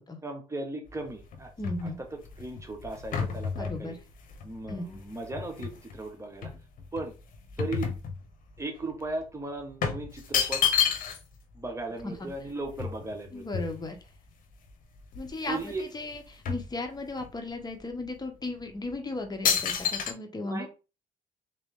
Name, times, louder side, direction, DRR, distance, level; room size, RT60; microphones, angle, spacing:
voice 1, 0.2-1.5 1.8-2.1 2.4-4.0 4.4-6.5 6.9-7.1 7.6-7.9 8.6-10.7 11.5-13.6 15.5-15.8 20.4-20.7, right 2 dB, 20° right, 3 dB, 1.3 m, -37 dB
sound 1, 0.9-6.0 6.4-8.6 8.9-9.1 9.8-11.4 11.7-11.8 12.0-14.1 14.7-14.8 15.0-15.8 16.1-17.3 17.9-18.0 18.7-18.9 19.4-20.1, left 7 dB, 70° left, 0.9 m, -31 dB
voice 2, 1.6-2.0 3.6-4.0 4.7-5.0 12.0-12.3 13.3-14.0 15.1-20.7, left 2 dB, 25° left, 4 dB, 1.2 m, -36 dB
3.6 x 2.9 x 3.7 m, 0.31 s
supercardioid pair, 70°, 15 cm